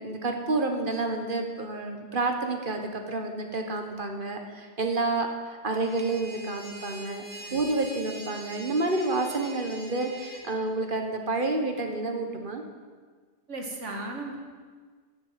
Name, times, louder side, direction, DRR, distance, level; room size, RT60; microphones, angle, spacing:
voice 1, 0.0-7.2 7.5-12.6, right 2 dB, 40° right, 4 dB, 1.5 m, -29 dB
sound 1, 5.7-10.4, equal, 5° left, 2.7 m, -43 dB
voice 2, 13.5-14.4, right 2 dB, 55° right, 2 dB, 2.1 m, -36 dB
13.5 x 7.1 x 9.2 m, 1.5 s
omnidirectional pair, 1.4 m